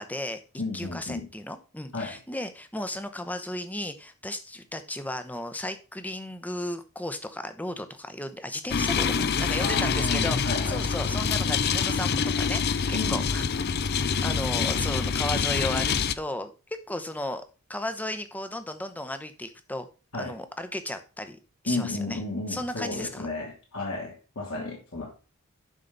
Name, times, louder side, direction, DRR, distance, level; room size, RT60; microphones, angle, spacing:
voice 1, 0.0-0.4 0.7-13.5 13.7-16.5 16.9-17.4 17.7-19.9 20.2-21.4 21.6-22.2 22.5-23.3, left 1 dB, 5° left, 0.8 m, -35 dB
voice 2, 0.6-1.3 1.9-2.2 9.6-10.8 12.9-13.3 20.1-20.3 21.7-25.1, left 2 dB, 75° left, 3.1 m, -32 dB
sound 1, 8.7-16.1, left 6 dB, 45° left, 0.5 m, -26 dB
11.0 x 5.7 x 4.0 m
head